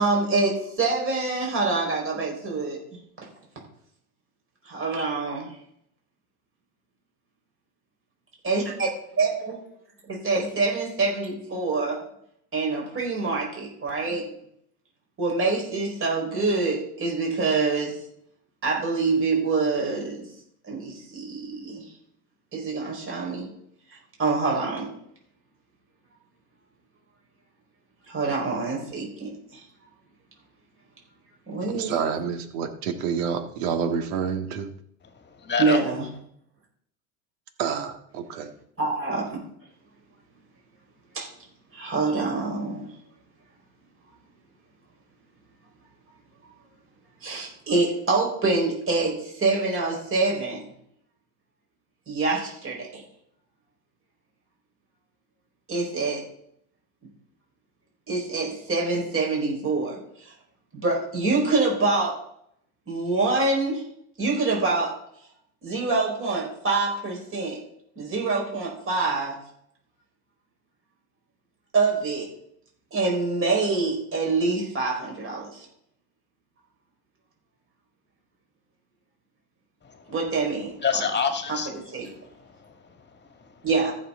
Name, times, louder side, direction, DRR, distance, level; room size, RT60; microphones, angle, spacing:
voice 1, 0.0-2.8 4.6-5.5 8.4-8.9 9.2-9.6 10.0-12.0 12.5-14.3 15.2-18.0 18.6-20.3 20.7-21.8 22.5-23.5 24.2-24.9 28.1-29.6 31.5-31.9 35.6-36.1 38.8-39.4 41.1-41.3 41.7-42.9 46.4-46.5 47.2-50.7 52.1-53.0 55.7-56.2 58.1-60.0 60.2-60.3 60.7-62.2 62.9-63.8 64.2-65.0 65.6-67.6 68.0-69.4 71.7-72.3 72.9-75.6 80.1-80.7 81.5-82.1 83.6-83.9, right 3 dB, 25° right, -1 dB, 4.7 m, -25 dB
voice 2, 31.7-34.7 37.6-38.5, right 7 dB, 70° right, 7 dB, 1.9 m, -28 dB
voice 3, 35.0-35.8 79.8-80.1 80.8-81.7 82.0-83.7, left 6 dB, 20° left, 6 dB, 1.9 m, -29 dB
14.5 x 6.6 x 3.8 m, 0.68 s
hypercardioid pair, 100°, 46 cm